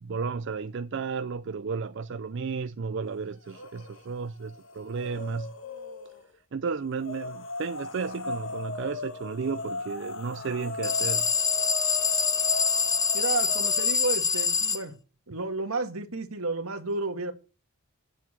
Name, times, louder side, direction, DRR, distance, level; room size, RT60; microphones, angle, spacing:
voice 1, 0.0-5.5 6.5-11.3, right 5 dB, 55° right, 0.4 m, -33 dB
sound 1, 3.4-4.0 4.4-6.2 7.0-14.1, left 3 dB, 60° left, 1.3 m, -37 dB
sound 2, 10.8-14.8, left 6 dB, 15° left, 0.6 m, -25 dB
voice 2, 13.1-14.9 15.3-17.3, right 3 dB, 75° right, 1.8 m, -31 dB
8.3 x 7.6 x 7.4 m
head